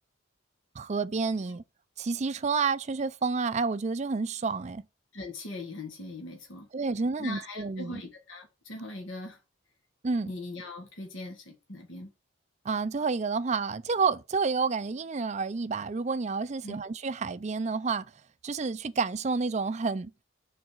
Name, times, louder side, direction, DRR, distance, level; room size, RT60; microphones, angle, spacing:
voice 1, 0.7-1.6 2.0-4.8 6.7-8.0 10.0-10.3 12.6-18.0 18.4-20.1, right 4 dB, 35° right, 0.4 m, -29 dB
voice 2, 5.1-6.7 7.2-9.4 10.3-12.1 16.6-16.8, left 2 dB, 65° left, 1.7 m, -40 dB
6.2 x 4.0 x 6.2 m
head